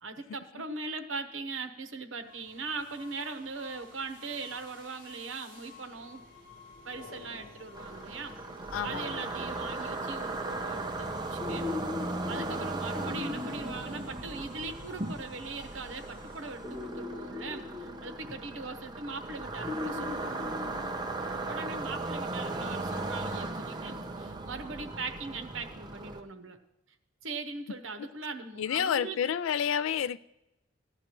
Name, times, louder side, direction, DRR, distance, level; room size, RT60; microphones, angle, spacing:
voice 1, 0.0-6.2 6.8-8.3 8.8-11.7 12.3-20.5 21.5-26.6 27.2-29.3, right 3 dB, 80° right, 0.9 m, -40 dB
sound 1, 2.2-17.0, left 3 dB, 45° left, 3.0 m, -53 dB
sound 2, 7.7-26.2, right 2 dB, 20° right, 0.6 m, -37 dB
voice 2, 8.7-9.3 28.6-30.2, left 8 dB, 80° left, 0.3 m, -29 dB
sound 3, 9.6-10.3 11.4-15.0 16.6-18.9 19.6-21.6 23.3-23.4, left 3 dB, 5° left, 1.4 m, -41 dB
15.5 x 10.0 x 3.0 m
head